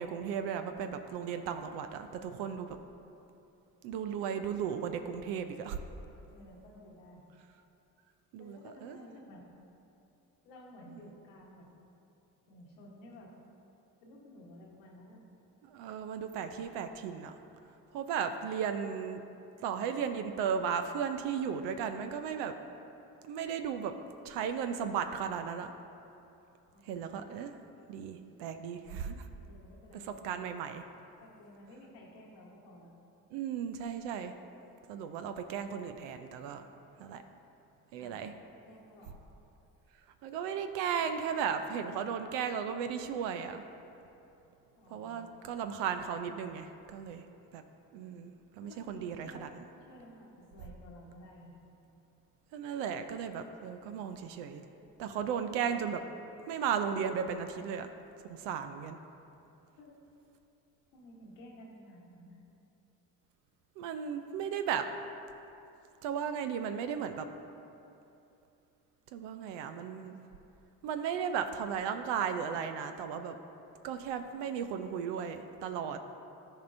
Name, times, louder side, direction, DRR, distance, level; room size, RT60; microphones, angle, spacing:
voice 1, 0.0-2.8 3.8-5.8 8.3-9.0 10.9-11.0 15.6-17.3 17.9-19.2 19.6-22.5 23.2-23.9 24.2-25.7 26.8-27.6 27.9-29.3 29.9-30.8 33.3-34.3 34.9-36.7 37.0-37.2 37.9-38.3 40.2-43.6 44.9-47.3 47.5-47.6 47.9-49.5 52.5-54.6 55.0-56.0 56.5-57.9 58.2-59.0 63.8-64.9 66.0-67.3 69.1-70.2 70.8-73.4 73.8-76.0, right 7 dB, 80° right, 8 dB, 0.5 m, -35 dB
voice 2, 6.3-7.2 8.4-9.4 10.4-11.7 12.5-13.3 14.0-15.2 26.7-27.0 29.4-30.4 31.2-33.0 38.0-38.2 38.7-39.2 44.7-45.6 48.6-49.5 49.9-51.5 59.8-60.0 60.9-62.4, left 1 dB, 90° left, -2 dB, 1.3 m, -53 dB
13.0 x 4.5 x 2.6 m, 2.8 s
supercardioid pair, 65°, 42 cm